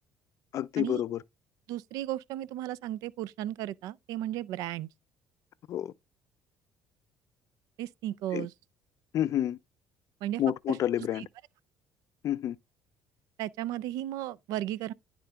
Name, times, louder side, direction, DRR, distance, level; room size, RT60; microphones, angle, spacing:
voice 1, 0.5-1.2 5.7-5.9 8.3-8.5 9.1-9.6 10.4-11.2 12.2-12.6, left 11 dB, 55° left, 0.4 m, -29 dB
voice 2, 1.7-4.9 7.8-8.5 10.2-10.4 10.7-10.8 11.1-11.3 13.4-14.9, right 13 dB, 75° right, 0.4 m, -35 dB
10.5 x 3.7 x 3.4 m
supercardioid pair, 80°, 6 cm